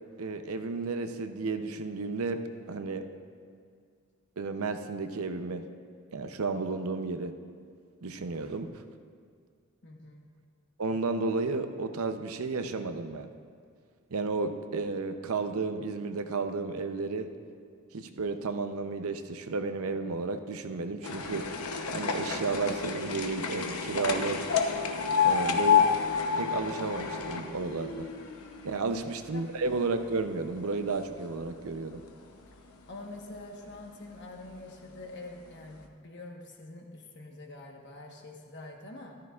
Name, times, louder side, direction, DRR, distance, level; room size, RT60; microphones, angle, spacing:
voice 1, 0.2-2.4 2.7-3.0 4.4-5.6 6.1-7.3 8.0-8.8 10.8-13.3 14.1-17.3 17.9-21.5 21.9-24.5 25.2-25.8 26.4-28.1 28.6-32.0, right 3 dB, 75° right, 8 dB, 0.6 m, -32 dB
voice 2, 9.8-10.3 28.8-29.0 29.3-29.5 32.9-39.1, left 2 dB, 50° left, 1 dB, 1.2 m, -45 dB
sound 1, 21.0-29.3 29.7-30.5 31.2-31.4 31.6-31.7 32.0-32.1 32.9-33.1 33.7-33.8 34.4-34.5 35.0-35.1, left 6 dB, 85° left, 0.8 m, -29 dB
13.5 x 13.5 x 2.4 m, 2.2 s
head